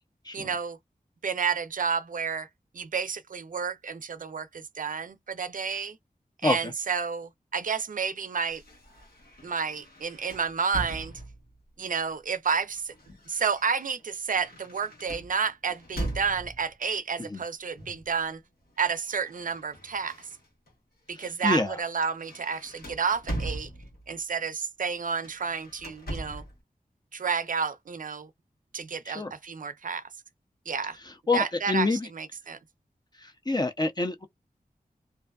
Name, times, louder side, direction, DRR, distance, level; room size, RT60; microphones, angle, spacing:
voice 1, 0.3-0.8 1.2-2.5 2.7-6.0 6.4-8.6 9.4-11.1 11.8-12.9 13.3-18.4 18.8-20.2 21.1-23.7 24.1-26.4 27.1-28.3 28.7-30.0 30.7-31.0 31.3-32.6, right 6 dB, 60° right, 0.4 m, -30 dB
sound 1, 8.5-11.6 12.5-16.7 17.8-18.1 18.4-20.7 21.2-21.4 21.8-24.2 25.1-26.6, right 1 dB, 85° left, 1.1 m, -40 dB
voice 2, 21.2-21.7 29.1-29.3 31.3-32.1 33.2-34.3, left 3 dB, 25° left, 0.5 m, -27 dB
2.5 x 2.2 x 2.3 m
wide cardioid pair, 55°, 15 cm